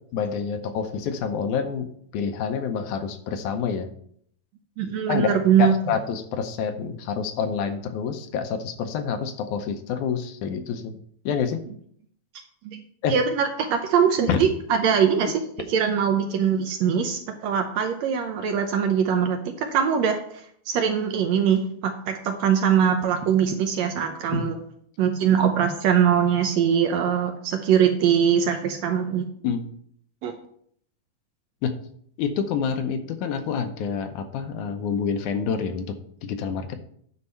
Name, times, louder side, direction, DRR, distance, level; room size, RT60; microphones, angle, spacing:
voice 1, 0.1-3.9 5.1-10.9 11.3-11.6 13.0-13.2 14.3-14.4 24.3-24.5 29.4-29.6 31.6-31.8 32.2-36.8, left 6 dB, 80° left, 7 dB, 2.1 m, -27 dB
voice 2, 4.8-5.7 12.7-12.8 13.1-14.5 14.8-15.4 15.7-24.6 25.0-29.3 30.2-30.4, right 8 dB, 75° right, 5 dB, 1.7 m, -22 dB
9.7 x 4.7 x 5.5 m, 0.65 s
omnidirectional pair, 3.7 m